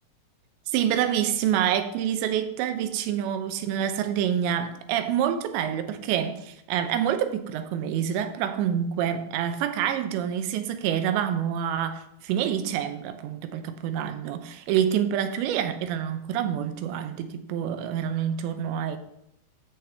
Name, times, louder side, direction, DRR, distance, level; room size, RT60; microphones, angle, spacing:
voice 1, 0.7-19.0, right 9 dB, 85° right, 2.9 m, -27 dB
10.0 x 8.1 x 3.3 m
omnidirectional pair, 5.1 m